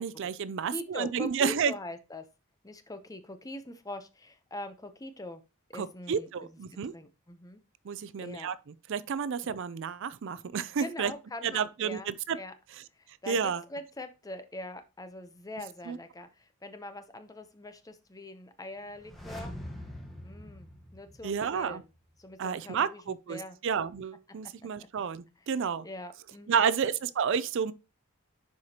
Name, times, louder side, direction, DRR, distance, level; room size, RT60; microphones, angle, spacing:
voice 1, 0.0-1.7 5.7-6.9 7.8-8.6 8.9-11.1 11.4-12.4 13.3-13.6 15.9-16.0 21.2-21.8 22.4-25.9 26.5-27.7, right 6 dB, 60° right, 0.4 m, -30 dB
voice 2, 0.7-2.3 2.6-5.4 5.7-6.5 6.9-7.6 8.2-8.5 10.8-12.1 12.4-12.5 12.9-19.5 20.2-21.9 22.2-23.6 24.8-24.9 25.8-26.7, left 2 dB, 15° left, 0.6 m, -43 dB
sound 1, 18.9-21.8 22.1-22.2, left 1 dB, ahead, 1.1 m, -44 dB
10.5 x 4.9 x 2.9 m
head